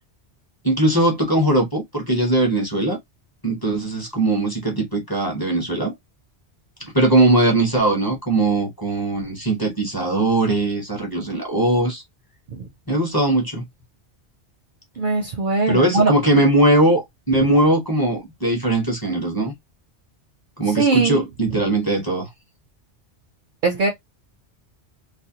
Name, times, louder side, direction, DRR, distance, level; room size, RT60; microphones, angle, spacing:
voice 1, 0.6-3.0 3.4-5.9 6.9-12.0 12.9-13.6 15.7-19.5 20.6-22.3, right 1 dB, 25° left, 0.7 m, -20 dB
voice 2, 15.0-16.4 20.7-21.2 23.6-23.9, right 3 dB, 60° right, 0.6 m, -21 dB
2.5 x 2.0 x 2.7 m
omnidirectional pair, 1.2 m